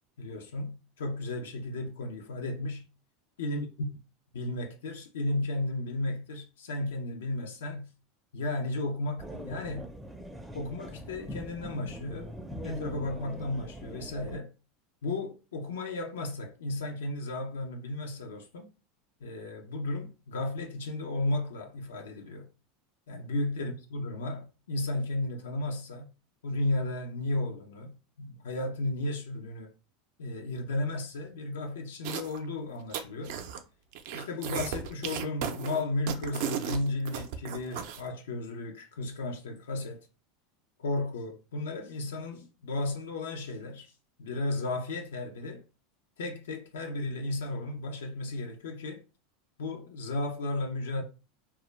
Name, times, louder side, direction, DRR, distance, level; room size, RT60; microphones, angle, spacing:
voice 1, 0.2-2.9 3.4-4.0 4.3-7.9 8.3-9.9 10.5-12.3 12.6-14.5 15.0-18.7 19.2-22.5 23.1-26.1 26.4-29.7 30.2-33.4 34.1-40.1 40.8-43.9 44.2-45.6 46.2-49.0 49.6-51.0, left 2 dB, 90° left, 0.4 m, -34 dB
sound 1, 9.2-14.4, equal, 5° right, 0.4 m, -42 dB
sound 2, 32.0-32.4 32.8-33.6 33.9-38.0, right 9 dB, 65° right, 0.4 m, -35 dB
2.1 x 2.1 x 3.1 m
hypercardioid pair, 105°, 0 cm